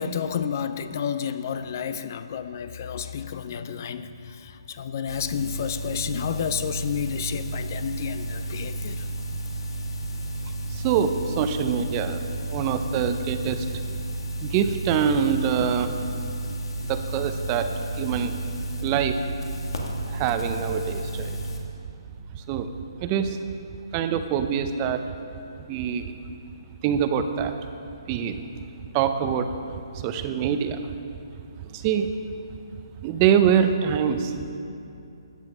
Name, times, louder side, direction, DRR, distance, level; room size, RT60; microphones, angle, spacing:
voice 1, 0.0-9.1, left 7 dB, 35° left, 0.4 m, -31 dB
sound 1, 5.1-21.6, right 1 dB, 75° left, 1.8 m, -32 dB
voice 2, 10.7-12.2 12.5-13.7 14.4-16.0 16.9-17.7 18.0-18.4 18.8-19.2 20.1-21.4 22.3-22.7 23.0-23.4 23.9-25.0 25.7-26.1 26.8-27.5 28.1-28.4 28.9-29.5 29.9-30.8 31.6-32.1 33.0-34.3, right 8 dB, 20° right, 0.6 m, -24 dB
14.0 x 9.2 x 5.5 m
hypercardioid pair, 165°, 3 cm